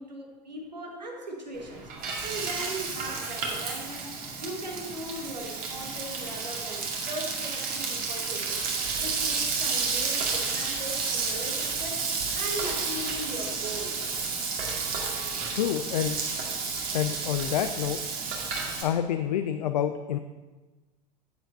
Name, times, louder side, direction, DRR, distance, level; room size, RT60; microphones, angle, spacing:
voice 1, 0.0-1.9 2.2-8.7 9.0-12.1 12.3-14.0, right 1 dB, 85° right, 1 dB, 1.5 m, -39 dB
Frying (food), 1.5-18.8, right 4 dB, 45° right, 1.9 m, -31 dB
voice 2, 15.5-16.2 16.9-18.0 18.8-20.2, left 10 dB, 70° left, 8 dB, 0.5 m, -28 dB
14.0 x 7.9 x 2.7 m, 1.2 s
figure-of-eight pair, 80°, 21 cm